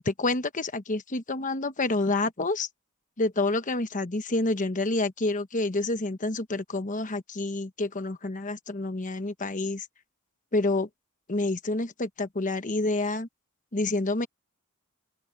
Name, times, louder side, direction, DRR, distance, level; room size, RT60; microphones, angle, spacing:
voice 1, 0.0-2.7 3.2-9.9 10.5-10.9 11.3-13.3 13.7-14.3, left 2 dB, 35° left, 1.1 m, -28 dB
open air
head